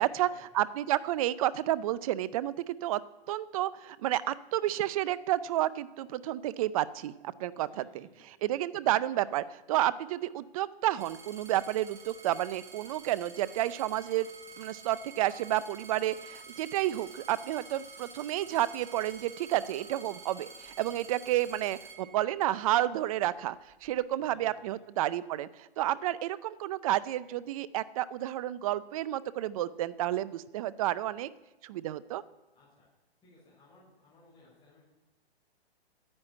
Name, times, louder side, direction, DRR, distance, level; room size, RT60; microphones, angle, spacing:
voice 1, 0.0-0.6 7.7-8.4 24.2-24.8 32.5-32.9 33.2-34.8, left 2 dB, 15° left, -7 dB, 5.8 m, -60 dB
voice 2, 0.5-3.0 3.3-7.1 7.4-8.1 8.4-14.3 14.6-23.6 23.8-31.3 31.6-32.2, right 14 dB, 35° right, 18 dB, 0.5 m, -30 dB
sound 1, 11.0-22.7 23.4-24.0, right 4 dB, 10° right, 1.5 m, -49 dB
10.5 x 9.7 x 8.7 m, 1.1 s
hypercardioid pair, 140°, 32 cm